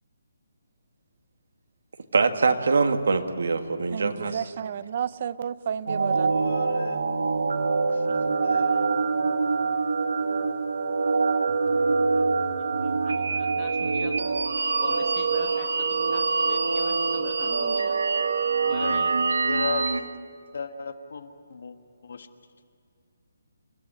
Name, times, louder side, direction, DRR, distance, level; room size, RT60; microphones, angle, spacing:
voice 1, 2.1-4.4, right 4 dB, 65° right, 6 dB, 1.9 m, -23 dB
voice 2, 3.9-6.3, right 8 dB, 30° right, 17 dB, 0.5 m, -31 dB
sound 1, 5.9-20.0, right 4 dB, 85° right, 1.7 m, -25 dB
voice 3, 6.3-7.0 7.9-8.1 8.3-8.9 18.6-19.0 19.4-20.0 20.5-21.7 22.0-22.3, left 5 dB, 50° left, 8 dB, 1.5 m, -35 dB
voice 4, 12.1-14.2 14.8-18.0 18.6-19.2, left 7 dB, 20° left, 4 dB, 1.5 m, -43 dB
29.0 x 15.0 x 10.0 m, 2.4 s
hypercardioid pair, 180°, 0 cm